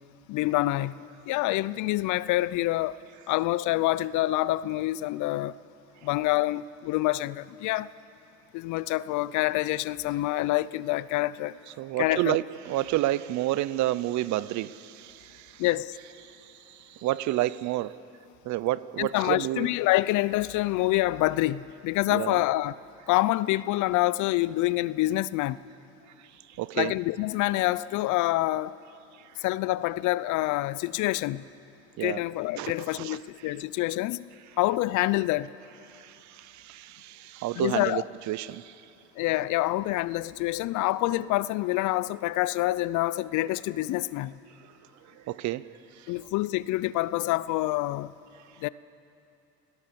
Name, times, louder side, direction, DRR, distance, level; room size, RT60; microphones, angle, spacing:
voice 1, 0.3-3.0 3.3-5.5 6.0-7.9 8.5-11.6 12.0-12.4 15.6-15.9 19.0-22.7 23.1-25.6 26.7-28.7 29.4-31.4 32.0-34.3 34.6-35.5 37.6-38.0 39.2-44.4 46.1-48.1 48.6-48.7, left 17 dB, 60° left, 0.7 m, -26 dB
voice 2, 11.8-15.6 16.2-18.0 18.4-19.7 22.1-22.4 26.2-26.9 29.2-29.4 32.0-32.2 32.6-33.2 35.9-38.8 45.1-45.7 46.0-46.1, right 15 dB, 60° right, 0.8 m, -30 dB
29.0 x 17.5 x 7.0 m
supercardioid pair, 80°, 34 cm